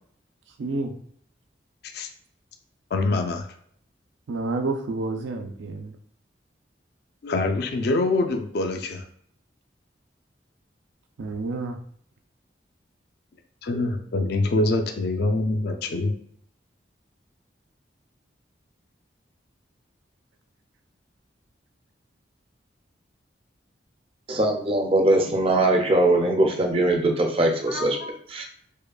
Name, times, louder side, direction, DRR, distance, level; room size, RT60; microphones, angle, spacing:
voice 1, 0.6-0.9 4.3-5.9 11.2-11.8, right 3 dB, 85° right, 6 dB, 0.5 m, -29 dB
voice 2, 2.9-3.4 7.2-9.0 13.6-16.1 27.7-28.1, left 2 dB, 60° left, 5 dB, 0.4 m, -25 dB
voice 3, 24.3-28.0 28.3-28.4, right 2 dB, 30° right, 3 dB, 0.5 m, -21 dB
4.9 x 2.2 x 2.3 m, 0.64 s
head